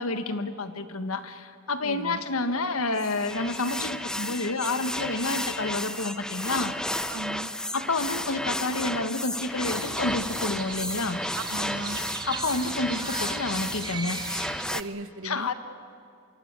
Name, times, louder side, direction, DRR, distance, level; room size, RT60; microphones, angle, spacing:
voice 1, 0.0-7.0 7.7-11.2 12.2-14.2 15.2-15.5, left 2 dB, 75° left, 10 dB, 1.5 m, -29 dB
voice 2, 1.8-2.2 7.1-7.5 11.4-12.0 14.7-15.5, right 2 dB, 65° right, 12 dB, 1.2 m, -36 dB
sound 1, 2.6-7.4, left 3 dB, 40° left, 5.0 m, -45 dB
sound 2, 2.9-14.8, left 1 dB, 5° left, 0.6 m, -33 dB
Crow, 9.6-14.8, right 4 dB, 20° right, 1.2 m, -38 dB
24.5 x 23.0 x 8.4 m, 2.5 s
head